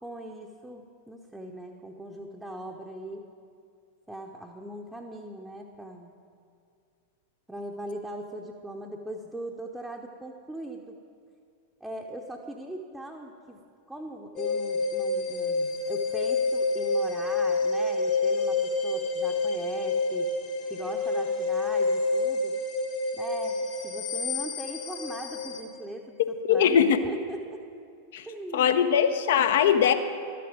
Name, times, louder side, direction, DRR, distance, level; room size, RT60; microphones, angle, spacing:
voice 1, 0.0-3.2 4.1-6.2 7.5-11.0 11.8-13.6 13.9-20.3 20.7-22.6 23.1-27.6 28.3-28.8 29.7-29.8, right 1 dB, 5° right, 0 dB, 0.7 m, -40 dB
sound 1, 14.4-25.6, left 3 dB, 35° left, 1.0 m, -28 dB
voice 2, 26.5-27.0 28.1-28.2 28.5-29.9, left 8 dB, 55° left, 9 dB, 0.6 m, -21 dB
12.5 x 7.6 x 5.2 m, 2.4 s
figure-of-eight pair, 90°, 0 cm